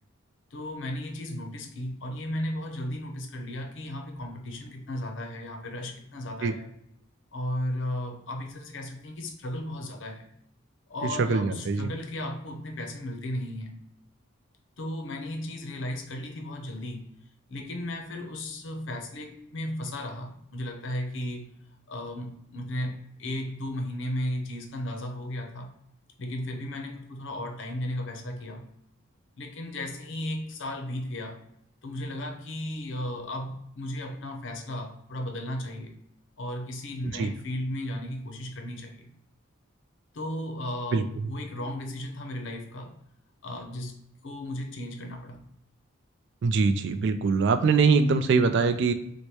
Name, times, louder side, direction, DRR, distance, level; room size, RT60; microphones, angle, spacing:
voice 1, 0.5-6.7 7.3-10.3 10.9-13.8 14.8-17.1 17.5-21.5 21.9-25.7 26.2-28.6 29.4-31.4 31.8-35.9 36.4-39.1 40.1-43.0 43.4-45.4, left 1 dB, 60° left, 4 dB, 0.6 m, -35 dB
voice 2, 11.3-11.9 37.2-37.3 40.9-41.0 46.4-48.9, right 4 dB, 60° right, 8 dB, 0.3 m, -23 dB
4.6 x 2.1 x 2.8 m, 0.76 s
head